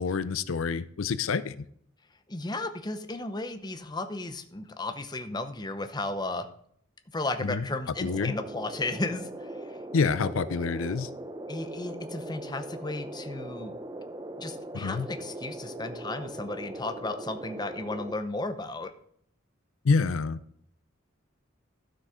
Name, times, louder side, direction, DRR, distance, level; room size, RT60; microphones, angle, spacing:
voice 1, 0.0-1.6 7.4-7.6 8.0-8.3 9.9-11.1 14.7-15.1 19.8-20.4, left 4 dB, 90° left, 15 dB, 0.5 m, -27 dB
voice 2, 2.3-6.5 7.1-9.3 11.5-13.8 14.4-18.9, left 2 dB, 20° left, 8 dB, 0.8 m, -34 dB
sound 1, 8.1-18.1, right 1 dB, 20° right, 0.7 m, -40 dB
12.0 x 6.3 x 5.0 m, 0.66 s
head